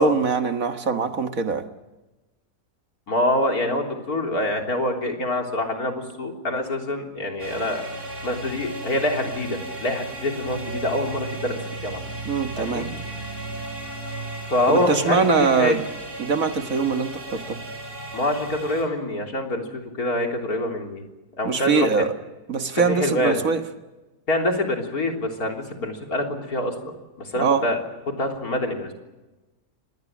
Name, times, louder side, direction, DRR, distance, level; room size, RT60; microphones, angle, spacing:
voice 1, 0.0-1.7 12.3-12.9 14.7-15.8 16.2-17.6 21.4-22.1 22.5-23.6 27.4-27.6, right 5 dB, 60° right, 7 dB, 2.0 m, -22 dB
voice 2, 3.1-7.8 8.2-12.0 12.6-12.9 14.5-15.8 18.1-21.0 21.4-22.0 22.9-23.4 24.3-26.7 27.2-27.8 28.1-28.9, left 1 dB, 70° left, 3 dB, 4.0 m, -25 dB
sound 1, 7.4-18.8, right 2 dB, 35° right, 6.6 m, -35 dB
27.0 x 20.5 x 7.3 m, 1.1 s
omnidirectional pair, 1.6 m